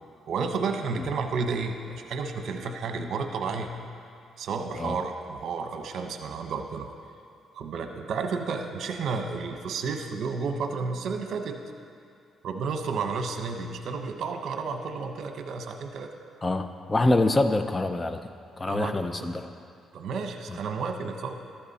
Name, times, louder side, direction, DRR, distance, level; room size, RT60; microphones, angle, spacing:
voice 1, 0.3-3.7 4.4-6.9 7.5-11.6 12.4-16.1 18.7-19.2 19.9-21.3, right 4 dB, 70° right, 5 dB, 1.1 m, -31 dB
voice 2, 16.4-18.2 18.6-19.5 20.5-20.6, left 2 dB, 20° left, 9 dB, 0.7 m, -25 dB
14.0 x 12.5 x 4.2 m, 2.4 s
cardioid pair, 90°, 0 cm